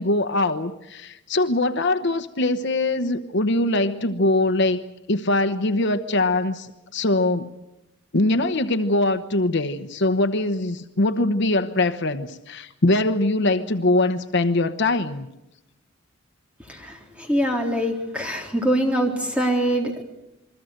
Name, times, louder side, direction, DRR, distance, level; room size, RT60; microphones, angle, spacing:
voice 1, 0.0-4.8 5.1-7.5 8.1-15.3, left 2 dB, 60° left, 10 dB, 1.1 m, -22 dB
voice 2, 16.6-20.0, equal, 5° right, 2 dB, 3.8 m, -24 dB
28.5 x 22.0 x 6.6 m, 0.88 s
head